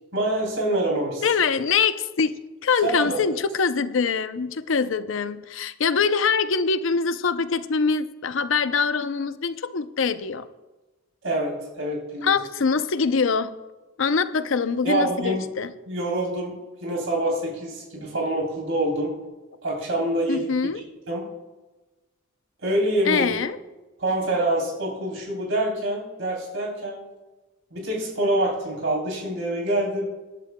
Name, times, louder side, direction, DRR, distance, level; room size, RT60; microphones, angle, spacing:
voice 1, 0.1-1.3 2.8-3.2 11.2-12.4 14.8-15.4 15.9-16.5 16.8-19.1 19.6-20.8 21.1-21.3 22.6-23.4 24.0-27.0 27.7-30.1, right 1 dB, 75° right, -2 dB, 3.3 m, -26 dB
voice 2, 1.2-10.5 12.2-13.5 14.0-15.7 20.3-20.8 23.1-23.6, left 5 dB, 70° left, 13 dB, 0.5 m, -24 dB
19.5 x 11.0 x 2.2 m, 1.2 s
head